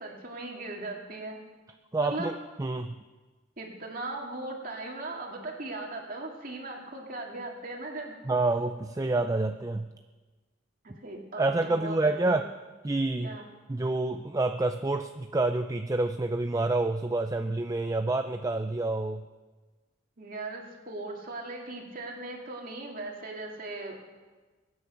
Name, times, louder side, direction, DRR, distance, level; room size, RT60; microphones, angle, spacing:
voice 1, 0.0-1.4 2.0-2.3 3.6-8.2 10.8-12.4 13.2-13.5 20.2-24.0, right 2 dB, 45° right, 0 dB, 2.7 m, -38 dB
voice 2, 1.9-2.3 2.6-3.0 8.3-9.9 11.4-12.4 12.8-13.4 13.7-19.2, right 2 dB, 15° right, 7 dB, 0.4 m, -28 dB
23.5 x 9.5 x 5.8 m, 1.3 s
head